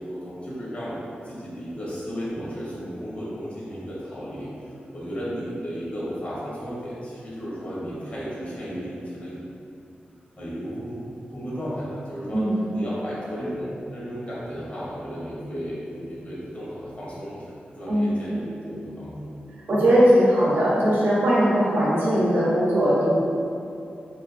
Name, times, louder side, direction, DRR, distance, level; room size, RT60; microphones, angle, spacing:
voice 1, 0.0-4.5 4.9-9.4 10.4-11.0 11.3-12.5 12.7-19.3, equal, 40° left, -8 dB, 0.9 m, -34 dB
voice 2, 17.9-18.3 19.7-23.1, equal, 75° right, -8 dB, 0.7 m, -20 dB
2.5 x 2.4 x 2.4 m, 2.6 s
cardioid pair, 70°, 4 cm